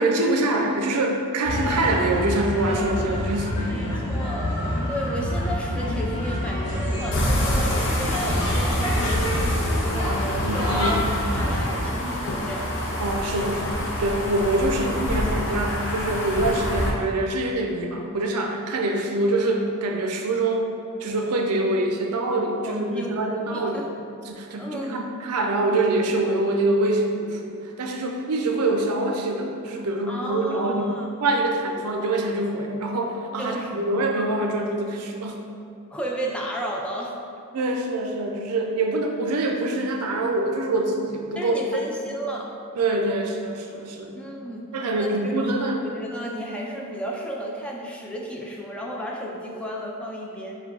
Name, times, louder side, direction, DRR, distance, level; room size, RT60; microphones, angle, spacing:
voice 1, 0.0-3.8 10.4-11.1 13.0-20.7 21.0-23.9 24.3-35.4 37.5-41.6 42.8-44.2 44.7-45.8, right 2 dB, 85° right, 2 dB, 0.5 m, -25 dB
sound 1, 1.4-11.8, left 1 dB, 85° left, 1.1 m, -27 dB
voice 2, 3.7-4.6 4.9-12.8 22.6-23.9 24.6-25.1 30.1-31.1 33.4-33.7 35.9-37.1 41.4-42.6 44.1-44.7 45.0-50.6, right 1 dB, 5° left, -2 dB, 0.3 m, -33 dB
sound 2, 7.1-16.9, equal, 55° left, 0.6 m, -27 dB
4.3 x 2.3 x 4.0 m, 2.5 s
head